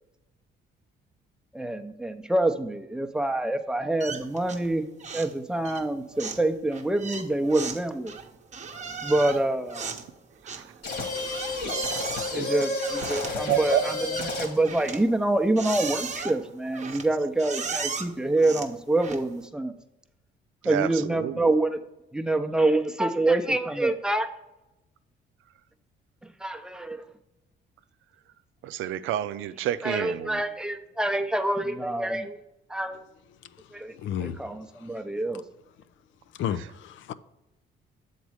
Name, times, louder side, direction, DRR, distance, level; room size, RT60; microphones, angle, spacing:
voice 1, 1.5-4.9 5.1-8.1 9.0-9.9 12.3-13.9 14.4-19.7 20.6-21.8 22.1-24.3 26.4-27.0 29.8-32.4 32.7-33.0 33.7-33.9 34.2-35.4, right 2 dB, 5° right, 0.6 m, -26 dB
sound 1, 4.0-4.7 5.0-5.4 5.6-19.5, right 5 dB, 35° right, 0.8 m, -37 dB
sound 2, 10.8-14.7, left 2 dB, 55° left, 1.8 m, -31 dB
voice 2, 13.3-14.1 20.6-21.5 28.6-30.4, right 12 dB, 85° right, 0.4 m, -29 dB
voice 3, 33.4-35.0 35.3-35.4 36.3-37.1, left 9 dB, 75° left, 0.4 m, -34 dB
7.2 x 4.1 x 4.9 m
cardioid pair, 90°, 20 cm